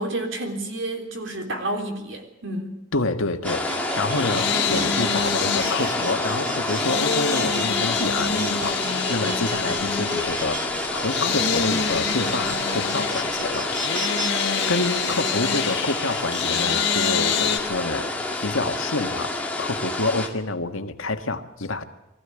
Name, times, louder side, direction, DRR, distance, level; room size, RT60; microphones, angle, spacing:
voice 1, 0.0-2.8, right 1 dB, 70° right, 4 dB, 3.6 m, -30 dB
voice 2, 2.9-10.6 10.9-13.8 14.7-18.1 18.4-21.8, left 2 dB, 85° left, 7 dB, 1.6 m, -28 dB
sound 1, 3.4-20.3, left 2 dB, 5° left, 2.1 m, -28 dB
sound 2, 3.5-17.1, right 2 dB, 40° right, 2.9 m, -34 dB
sound 3, 3.9-17.6, left 6 dB, 55° left, 2.1 m, -27 dB
23.5 x 15.0 x 10.0 m, 0.98 s
head